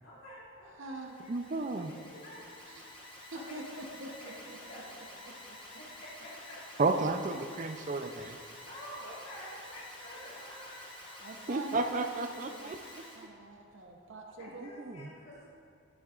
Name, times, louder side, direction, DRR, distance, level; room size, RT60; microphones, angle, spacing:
voice 1, 0.0-2.4 3.3-4.9 5.2-5.4 5.7-6.8 8.6-11.4 11.8-12.1 14.4-15.5, equal, 60° left, -8 dB, 2.1 m, -49 dB
voice 2, 0.8-1.1 2.6-2.9 3.3-4.6 5.5-5.6 11.2-12.7 13.1-14.7, right 2 dB, 60° right, 1 dB, 0.8 m, -45 dB
Alarm, 0.9-13.3, left 1 dB, 25° left, 1.0 m, -50 dB
voice 3, 1.3-1.9 6.8-8.4 11.5-13.0 14.6-15.1, right 3 dB, 35° right, 7 dB, 0.4 m, -32 dB
11.5 x 8.4 x 2.4 m, 2.5 s
head